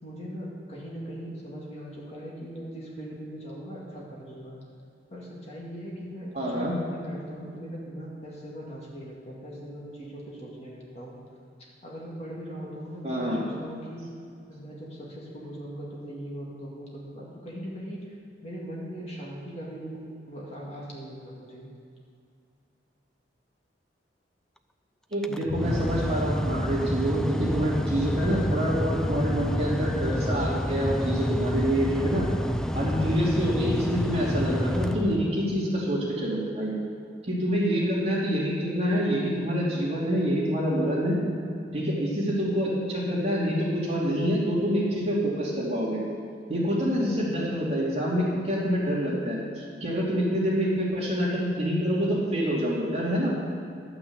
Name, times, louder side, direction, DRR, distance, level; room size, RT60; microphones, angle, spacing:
voice 1, 0.0-4.6 5.1-11.2 11.8-14.1 14.5-18.1 18.4-20.0 20.3-21.7, equal, 35° left, -4 dB, 2.1 m, -40 dB
voice 2, 6.3-6.7 13.0-13.4 25.1-32.2 32.7-36.7 37.2-41.1 41.7-46.0 46.5-53.3, equal, 35° right, -6 dB, 2.8 m, -26 dB
Mechanical fan, 25.1-35.7, equal, 5° left, 0.3 m, -29 dB
11.5 x 6.0 x 8.1 m, 2.5 s
head